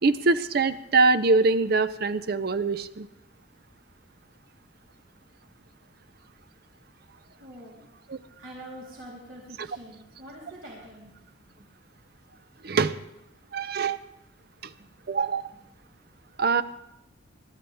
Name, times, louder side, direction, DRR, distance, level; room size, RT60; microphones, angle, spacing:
voice 1, 0.0-3.1 8.1-8.2 9.6-9.7 12.6-13.0 13.5-14.0 14.6-14.7 15.1-15.5 16.4-16.6, right 3 dB, 50° right, 13 dB, 0.5 m, -23 dB
voice 2, 7.4-7.8 8.4-11.1 14.8-14.9, right 1 dB, 90° right, -4 dB, 3.5 m, -45 dB
20.5 x 12.5 x 3.5 m, 0.86 s
head